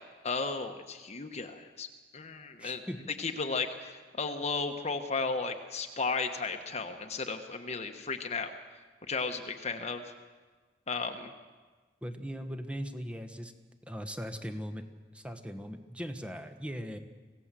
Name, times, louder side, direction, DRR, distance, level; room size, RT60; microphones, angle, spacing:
voice 1, 0.2-1.9 2.1-2.8 3.2-8.5 9.1-10.0 10.9-11.3, left 4 dB, 40° left, 5 dB, 1.3 m, -34 dB
voice 2, 2.6-3.0 12.0-13.5 13.9-14.8 15.1-17.0, equal, 5° right, 7 dB, 1.4 m, -39 dB
25.5 x 17.0 x 7.6 m, 1.3 s
head